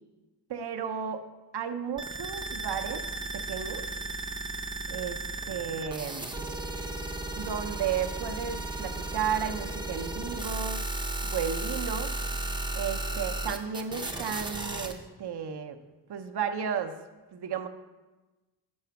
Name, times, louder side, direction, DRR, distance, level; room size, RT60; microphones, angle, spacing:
voice 1, 0.5-1.2 1.5-3.0 3.3-3.9 4.9-6.3 7.4-10.8 11.2-12.1 12.7-15.8 16.1-17.0 17.3-17.7, right 7 dB, 65° right, 6 dB, 0.6 m, -33 dB
sound 1, 2.0-14.9, right 2 dB, 10° right, 0.5 m, -35 dB
6.3 x 4.9 x 5.7 m, 1.2 s
wide cardioid pair, 115°, 44 cm